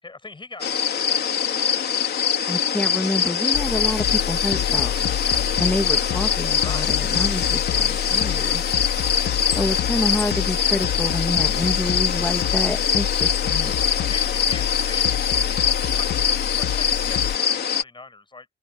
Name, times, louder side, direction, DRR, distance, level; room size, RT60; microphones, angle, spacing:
voice 1, 0.0-1.2 6.6-6.9 14.1-15.0 16.0-18.5, left 3 dB, 25° left, 6.5 m, -41 dB
sound 1, 0.6-17.8, left 7 dB, 55° left, 3.6 m, -23 dB
voice 2, 2.5-4.9 5.6-8.6 9.5-13.7, left 1 dB, 10° left, 2.4 m, -27 dB
sound 2, 3.5-17.4, left 12 dB, 75° left, 1.4 m, -28 dB
open air
cardioid pair, 90°, 20 cm